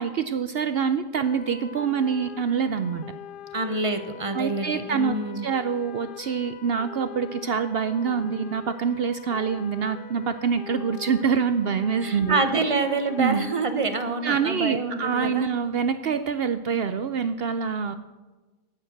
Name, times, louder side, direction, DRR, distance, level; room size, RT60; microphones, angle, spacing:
voice 1, 0.0-3.0 4.3-12.4 13.2-13.4 14.2-17.9, right 6 dB, 65° right, 11 dB, 0.6 m, -26 dB
sound 1, 1.2-13.7, left 8 dB, 90° left, 0.4 m, -42 dB
voice 2, 3.5-5.5 12.0-15.5, right 3 dB, 25° right, 8 dB, 0.8 m, -26 dB
9.6 x 9.0 x 7.9 m, 1.2 s
omnidirectional pair, 1.5 m